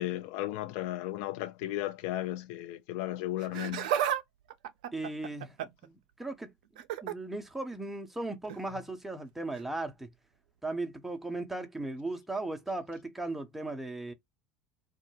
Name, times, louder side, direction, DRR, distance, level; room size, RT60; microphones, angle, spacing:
voice 1, 0.0-3.9, left 14 dB, 55° left, 0.4 m, -35 dB
Laughter, 3.4-4.2 4.5-5.9 6.8-7.1 8.5-8.6 9.5-9.6, right 10 dB, 60° right, 0.4 m, -32 dB
voice 2, 4.9-5.6 5.8-6.5 7.0-10.1 10.6-14.1, right 2 dB, 5° right, 0.6 m, -37 dB
2.3 x 2.1 x 3.1 m
figure-of-eight pair, 70°, 5 cm